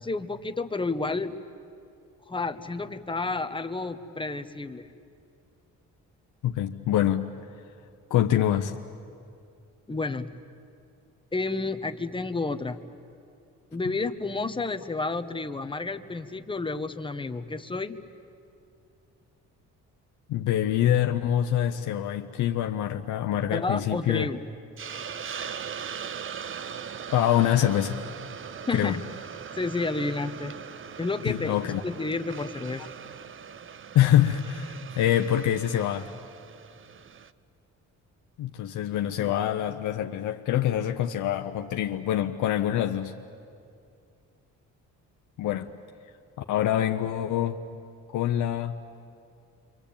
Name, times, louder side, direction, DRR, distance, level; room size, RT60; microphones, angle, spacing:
voice 1, 0.0-1.3 2.3-4.9 9.9-10.3 11.3-12.8 13.7-18.0 23.5-24.4 28.7-29.0 29.6-30.6 31.0-31.6 31.8-32.8, left 3 dB, 15° left, 8 dB, 1.3 m, -30 dB
voice 2, 6.4-7.3 8.1-8.7 13.9-14.0 20.3-24.3 27.1-28.0 28.7-29.0 31.3-31.8 33.9-36.1 38.4-43.1 45.4-45.7 46.5-47.6 48.1-48.8, left 11 dB, 80° left, 5 dB, 1.0 m, -25 dB
Hiss, 24.8-37.3, right 7 dB, 45° right, 0.8 m, -40 dB
27.0 x 25.0 x 8.7 m, 2.4 s
cardioid pair, 90°, 30 cm